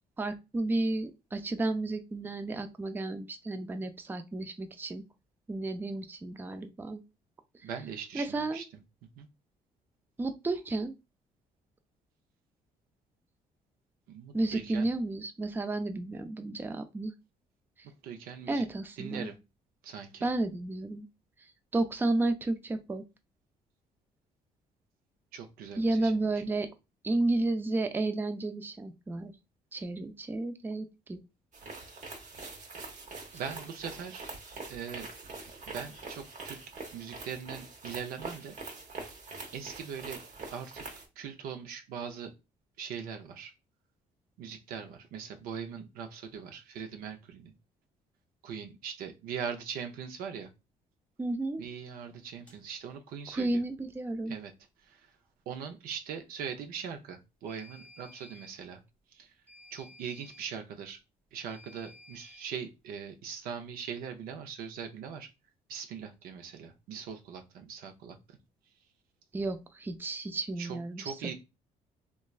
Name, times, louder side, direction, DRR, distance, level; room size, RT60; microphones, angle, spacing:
voice 1, 0.2-5.0 5.5-7.0 7.6-7.7 8.1-8.6 10.2-10.9 14.3-17.1 18.5-19.3 20.2-21.1 21.4-23.0 25.8-26.7 27.0-29.3 29.7-31.2 51.2-51.6 53.3-54.4 69.3-71.1, right 2 dB, 15° right, 8 dB, 0.4 m, -32 dB
voice 2, 7.6-8.6 9.2-9.3 14.1-14.9 17.8-18.6 19.0-19.4 19.8-20.3 25.3-26.3 33.3-34.3 34.7-35.1 35.7-36.6 36.9-38.6 39.5-40.2 40.5-42.3 42.8-43.5 44.4-47.5 48.4-50.5 51.6-53.6 54.3-54.5 54.8-55.1 55.5-58.8 59.1-59.3 59.7-61.0 61.3-65.3 65.7-68.4 70.6-71.3, right 7 dB, 80° right, 6 dB, 0.5 m, -41 dB
sound 1, 31.5-41.1, right 3 dB, 55° right, 0.8 m, -44 dB
sound 2, 52.5-52.6 57.5-58.6 59.5-60.6 61.5-62.6, left 1 dB, 10° left, 0.9 m, -54 dB
3.0 x 2.3 x 2.3 m, 0.25 s
cardioid pair, 85°, 15 cm